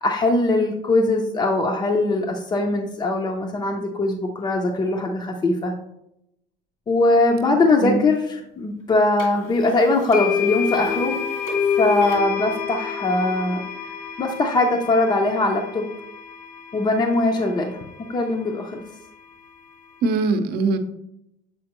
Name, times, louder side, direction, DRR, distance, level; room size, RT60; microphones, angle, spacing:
voice 1, 0.0-5.7 6.9-11.2 11.8-13.6 14.2-15.9 16.7-17.8 18.1-18.8, left 2 dB, 20° left, 0 dB, 0.5 m, -21 dB
sound 1, 9.2-9.3 10.1-18.2, left 7 dB, 90° left, 1.9 m, -27 dB
voice 2, 20.0-20.8, right 3 dB, 50° right, 8 dB, 0.7 m, -21 dB
7.5 x 4.3 x 2.9 m, 0.83 s
cardioid pair, 160°, 20 cm